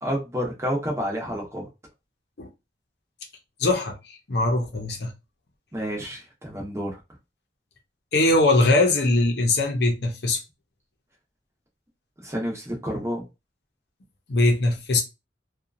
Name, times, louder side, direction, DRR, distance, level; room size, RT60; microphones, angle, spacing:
voice 1, 0.0-1.7 5.7-7.0 12.2-13.2, equal, 15° right, 0.8 m, -29 dB
voice 2, 3.6-5.1 8.1-10.4 14.3-15.0, left 2 dB, 65° left, 0.7 m, -21 dB
2.8 x 2.3 x 2.4 m
head